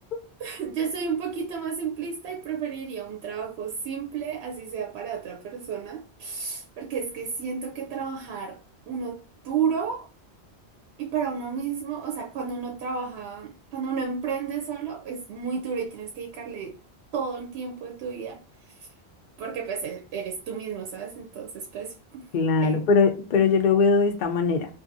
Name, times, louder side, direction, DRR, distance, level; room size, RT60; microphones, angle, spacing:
voice 1, 0.4-8.6 8.9-10.1 11.0-16.8 17.1-18.9 19.4-22.3 22.6-22.8, right 6 dB, 75° right, 0.8 m, -32 dB
voice 2, 22.3-24.7, left 4 dB, 60° left, 0.6 m, -21 dB
2.6 x 2.5 x 2.5 m
omnidirectional pair, 1.1 m